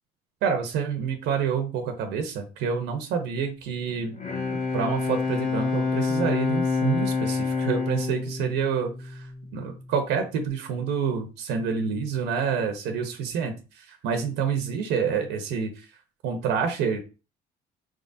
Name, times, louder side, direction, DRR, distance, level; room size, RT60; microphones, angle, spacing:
voice 1, 0.4-4.2 4.7-9.3 9.5-15.8 16.2-17.0, right 6 dB, 85° right, 4 dB, 1.0 m, -28 dB
Bowed string instrument, 4.0-9.7, left 4 dB, 50° left, 1.8 m, -27 dB
4.8 x 3.7 x 2.7 m, 0.31 s
cardioid pair, 110°, 17 cm